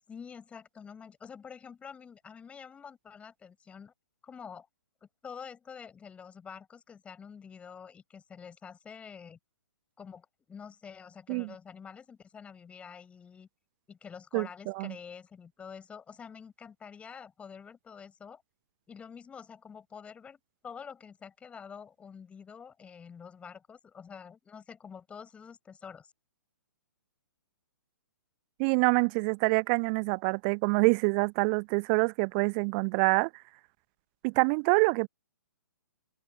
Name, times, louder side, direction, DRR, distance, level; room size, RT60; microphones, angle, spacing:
voice 1, 0.1-3.9 4.2-4.7 5.0-9.4 10.0-13.5 13.9-18.4 18.9-26.1, left 6 dB, 10° left, 4.7 m, -47 dB
voice 2, 28.6-33.3 34.2-35.1, right 38 dB, 25° right, 0.7 m, -26 dB
figure-of-eight pair, 120°, 11 cm